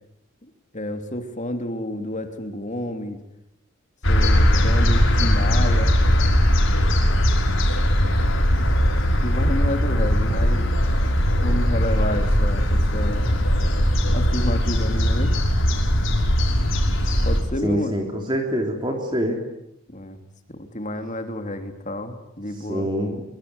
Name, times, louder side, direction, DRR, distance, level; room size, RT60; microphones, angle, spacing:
voice 1, 0.7-3.2 4.1-5.9 8.6-8.8 9.2-10.7 11.4-13.3 14.1-15.3 17.2-18.0 19.9-20.2 20.5-22.9, left 1 dB, 35° left, 6 dB, 3.2 m, -30 dB
sound 1, 4.0-17.4, equal, 65° left, 5.9 m, -19 dB
voice 2, 17.6-19.4 22.7-23.2, equal, 20° right, 2 dB, 3.5 m, -25 dB
24.5 x 24.0 x 9.8 m, 0.80 s
head